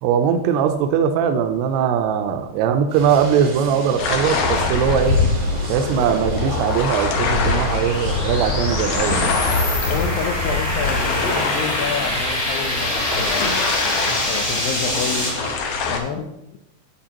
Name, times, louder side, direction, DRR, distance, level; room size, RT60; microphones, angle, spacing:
voice 1, 0.0-5.2 5.7-9.4, right 8 dB, 85° right, 6 dB, 2.6 m, -20 dB
sound 1, 2.9-15.6, right 2 dB, 60° right, 1.3 m, -33 dB
sound 2, 4.0-16.0, left 4 dB, 70° left, 2.2 m, -24 dB
sound 3, 5.0-15.3, left 1 dB, 30° left, 1.5 m, -26 dB
voice 2, 9.9-13.7 14.2-15.4 15.9-16.3, left 6 dB, 85° left, 3 dB, 2.0 m, -28 dB
11.0 x 7.4 x 2.9 m, 0.87 s
omnidirectional pair, 4.8 m